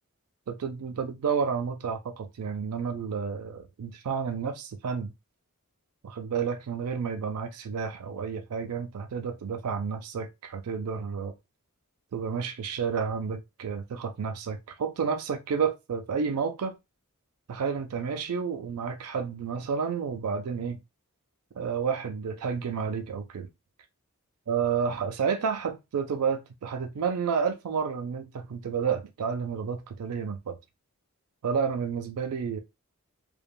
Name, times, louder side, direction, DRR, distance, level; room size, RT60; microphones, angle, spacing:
voice 1, 0.5-5.1 6.0-11.3 12.1-16.8 17.5-20.8 21.6-23.5 24.5-30.6 31.4-32.6, right 6 dB, 85° right, 0.4 m, -30 dB
3.2 x 2.1 x 2.2 m
head